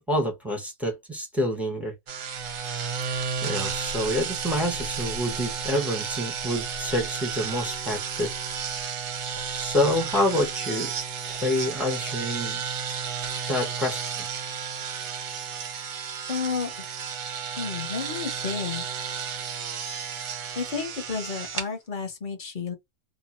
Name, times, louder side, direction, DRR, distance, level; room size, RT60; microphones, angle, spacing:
voice 1, 0.0-1.9 3.1-8.3 9.5-10.9 11.3-12.6 13.5-14.2, left 1 dB, ahead, 0.6 m, -27 dB
sound 1, 2.1-21.7, right 6 dB, 90° right, 1.3 m, -32 dB
voice 2, 16.3-16.9 17.6-18.8 20.6-22.7, left 5 dB, 40° left, 0.8 m, -31 dB
2.8 x 2.1 x 2.9 m
omnidirectional pair, 1.6 m